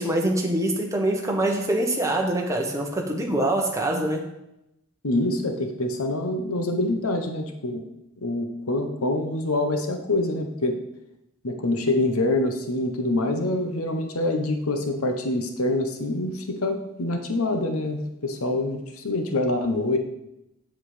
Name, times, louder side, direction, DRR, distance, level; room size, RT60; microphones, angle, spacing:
voice 1, 0.0-4.3, right 1 dB, 15° right, 1 dB, 1.3 m, -24 dB
voice 2, 5.0-7.8 8.2-10.8 11.4-20.0, left 2 dB, 80° left, 5 dB, 1.1 m, -25 dB
7.8 x 7.7 x 5.0 m, 0.86 s
head